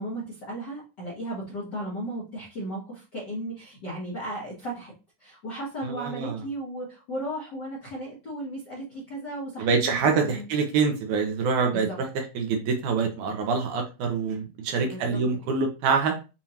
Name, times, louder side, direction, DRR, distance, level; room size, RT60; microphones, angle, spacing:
voice 1, 0.0-4.9 5.2-10.4 11.7-11.9 14.8-15.2, right 1 dB, 55° left, -6 dB, 1.1 m, -35 dB
voice 2, 5.8-6.4 9.6-16.2, right 5 dB, 75° right, 3 dB, 2.1 m, -25 dB
7.2 x 2.5 x 2.8 m, 0.30 s
omnidirectional pair, 3.9 m